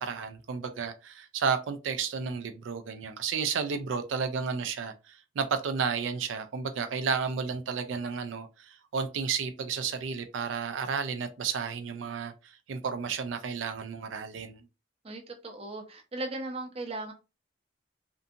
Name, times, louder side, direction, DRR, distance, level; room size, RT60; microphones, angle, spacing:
voice 1, 0.0-14.6, right 6 dB, 90° right, 0.4 m, -32 dB
voice 2, 15.0-17.1, right 2 dB, 30° right, 0.5 m, -37 dB
2.6 x 2.5 x 2.4 m
head